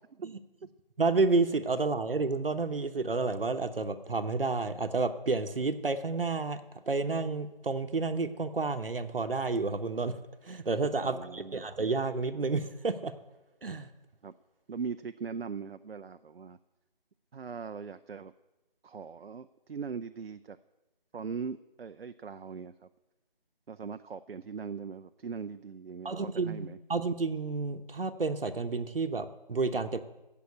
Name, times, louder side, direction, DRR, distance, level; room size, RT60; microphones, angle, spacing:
voice 1, 1.0-6.6 6.9-10.2 10.4-13.1 13.6-13.9 26.0-30.0, right 3 dB, 70° right, 8 dB, 1.1 m, -30 dB
voice 2, 11.0-11.7 14.2-14.3 14.7-16.6 17.3-18.3 18.8-20.6 21.1-22.7 23.7-26.8, right 5 dB, 85° right, 11 dB, 0.6 m, -40 dB
15.5 x 5.9 x 8.4 m, 1.1 s
figure-of-eight pair, 180°, 29 cm